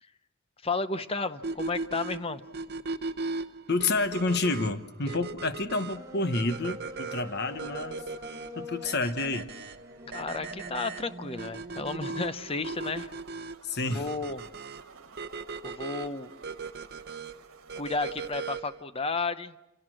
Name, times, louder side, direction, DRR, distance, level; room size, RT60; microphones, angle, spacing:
voice 1, 0.6-2.4 10.1-13.1 13.9-14.5 15.6-16.3 17.7-19.5, left 3 dB, 25° left, 12 dB, 0.7 m, -32 dB
sound 1, 1.4-18.8, right 4 dB, 50° right, 0.9 m, -38 dB
voice 2, 3.7-8.0 8.5-9.5 13.6-14.1, left 3 dB, 50° left, 11 dB, 1.1 m, -29 dB
sound 2, 5.9-12.6, left 1 dB, 15° right, 1.8 m, -45 dB
sound 3, 12.1-18.5, right 4 dB, 75° right, 1.5 m, -54 dB
27.0 x 17.5 x 7.7 m, 0.98 s
head